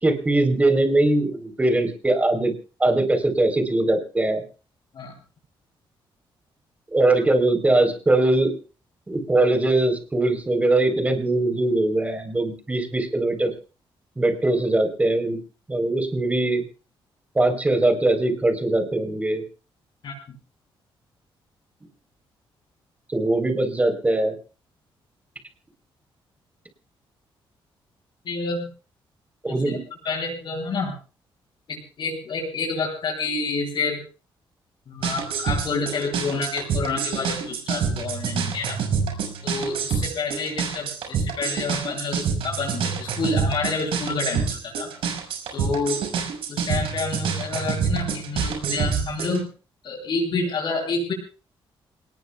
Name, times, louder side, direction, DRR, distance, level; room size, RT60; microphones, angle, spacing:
voice 1, 0.0-2.5 2.8-4.4 6.9-8.5 9.1-13.5 14.2-15.4 15.7-16.6 17.3-19.4 23.1-24.4 29.4-29.8, right 2 dB, 15° right, 6 dB, 4.1 m, -21 dB
voice 2, 20.0-20.4 28.2-28.7 29.5-29.8 30.0-30.9 31.7-34.0 34.9-38.8 39.4-44.9 45.5-46.1 46.5-49.5 49.8-51.1, left 3 dB, 50° left, -5 dB, 7.9 m, -28 dB
sound 1, 35.0-49.4, right 6 dB, 85° right, 6.0 m, -27 dB
27.5 x 19.5 x 2.4 m, 0.35 s
cardioid pair, 130°, 9 cm